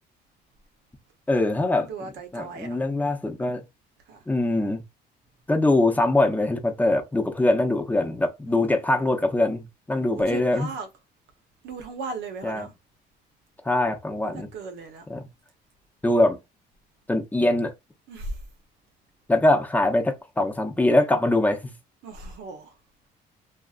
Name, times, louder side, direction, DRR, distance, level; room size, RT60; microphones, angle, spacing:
voice 1, 1.3-1.9 2.3-3.6 4.3-4.8 5.5-10.7 12.4-12.7 13.6-14.5 15.1-15.3 16.0-16.4 17.1-17.7 19.3-21.7, left 2 dB, 10° left, 0.6 m, -23 dB
voice 2, 1.8-2.8 4.1-4.2 8.5-9.1 10.1-10.9 11.6-12.7 14.2-15.1 18.1-18.4 22.0-22.7, right 4 dB, 85° right, 0.9 m, -37 dB
2.7 x 2.5 x 2.4 m
cardioid pair, 110°, 17 cm